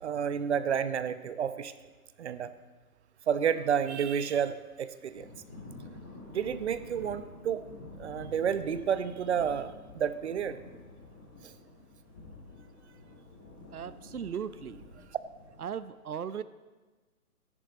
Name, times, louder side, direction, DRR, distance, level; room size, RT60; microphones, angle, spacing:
voice 1, 0.0-1.7 2.2-2.5 3.3-5.3 6.3-7.6 8.0-10.6 11.4-11.5, right 8 dB, 50° right, 13 dB, 0.9 m, -30 dB
Thunder / Rain, 5.1-15.7, left 2 dB, 5° left, 0.5 m, -49 dB
voice 2, 13.7-14.8 15.6-16.4, right 8 dB, 75° right, 15 dB, 0.8 m, -37 dB
26.5 x 11.0 x 4.2 m, 1.3 s
figure-of-eight pair, 130°, 44 cm